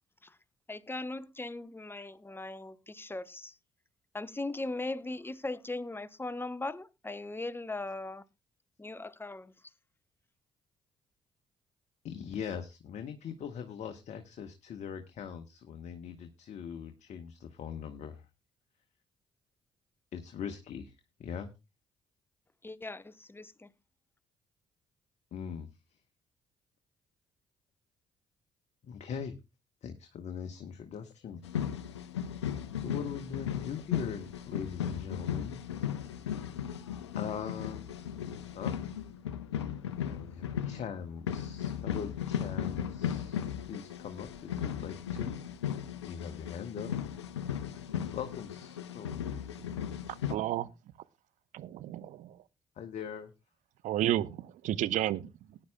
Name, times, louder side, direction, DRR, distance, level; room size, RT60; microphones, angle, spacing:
voice 1, 0.7-3.6 4.1-8.2 8.8-9.5 22.6-23.7, left 2 dB, 15° left, 0.9 m, -39 dB
voice 2, 12.0-18.3 20.1-20.9 21.2-21.5 25.3-25.7 28.8-29.3 29.8-31.4 32.8-35.6 37.2-38.1 38.5-38.7 40.0-43.4 43.7-45.3 46.0-46.9 48.1-49.1 52.8-53.3, left 7 dB, 55° left, 1.1 m, -41 dB
sound 1, 31.4-50.4, left 9 dB, 85° left, 0.6 m, -36 dB
voice 3, 50.3-50.7 51.5-52.4 53.8-55.6, right 13 dB, 65° right, 0.6 m, -32 dB
19.0 x 9.9 x 2.2 m
hypercardioid pair, 45°, 14 cm